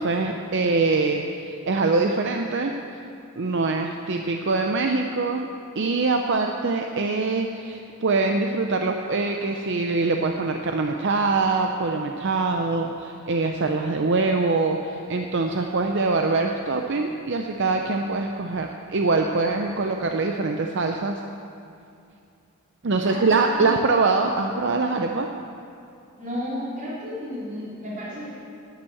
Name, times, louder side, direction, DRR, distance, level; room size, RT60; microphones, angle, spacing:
voice 1, 0.0-2.8 3.4-5.5 5.8-21.2 22.8-25.3, right 3 dB, 55° right, 3 dB, 0.6 m, -24 dB
voice 2, 23.0-23.7 26.1-28.3, equal, 35° right, -8 dB, 3.4 m, -33 dB
11.0 x 8.9 x 7.1 m, 2.5 s
head